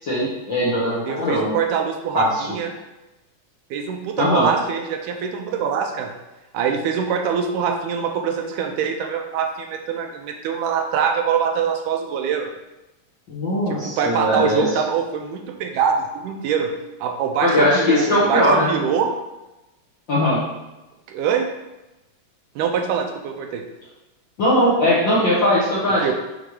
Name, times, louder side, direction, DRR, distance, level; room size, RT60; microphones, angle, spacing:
voice 1, 0.0-1.5 2.1-2.4 4.2-4.5 13.3-14.6 17.4-18.7 20.1-20.4 24.4-26.1, left 1 dB, 50° left, -8 dB, 1.4 m, -19 dB
voice 2, 1.1-2.7 3.7-6.1 6.5-12.5 13.7-16.7 17.0-19.1 21.1-21.5 22.6-23.6 26.0-26.1, right 7 dB, 80° right, 4 dB, 2.1 m, -24 dB
6.6 x 3.8 x 4.8 m, 1.0 s
omnidirectional pair, 3.8 m